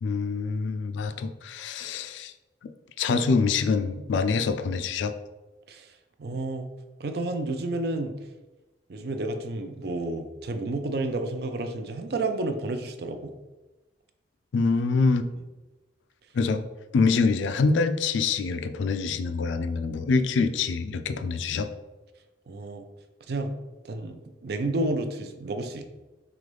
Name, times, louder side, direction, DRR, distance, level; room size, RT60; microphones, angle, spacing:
voice 1, 0.0-2.3 3.0-5.1 14.5-15.3 16.3-16.6 16.9-21.7, left 4 dB, 85° left, 9 dB, 0.4 m, -25 dB
voice 2, 6.2-6.7 7.0-8.2 8.9-13.3 22.5-22.8 23.3-23.6 23.8-25.9, right 2 dB, 60° right, 7 dB, 0.4 m, -31 dB
3.8 x 3.5 x 3.3 m, 1.1 s
head